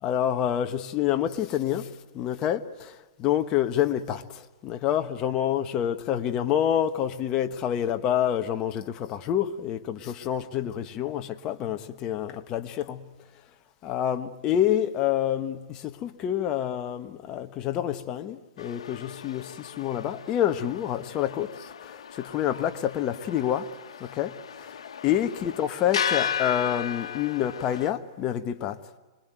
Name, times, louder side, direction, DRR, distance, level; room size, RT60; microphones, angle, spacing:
voice 1, 0.0-2.9 3.2-13.1 13.8-23.7 24.0-24.8 25.0-28.8, left 10 dB, 25° left, 1.3 m, -28 dB
sound 1, 18.6-27.9, left 8 dB, 85° left, 1.4 m, -35 dB
26.0 x 22.0 x 9.2 m
hypercardioid pair, 150°, 3 cm